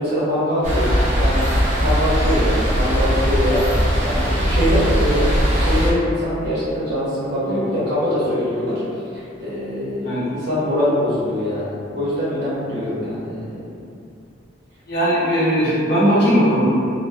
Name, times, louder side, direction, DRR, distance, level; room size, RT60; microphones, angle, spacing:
voice 1, 0.0-1.5 1.8-8.8 9.1-13.5, equal, 60° right, -9 dB, 1.0 m, -23 dB
sound 1, 0.6-5.9, equal, 40° right, 0.6 m, -19 dB
sound 2, 7.5-10.0, left 4 dB, 30° left, 0.4 m, -34 dB
voice 2, 14.9-16.7, equal, 60° left, -10 dB, 0.9 m, -18 dB
3.0 x 2.1 x 2.2 m, 2.5 s
head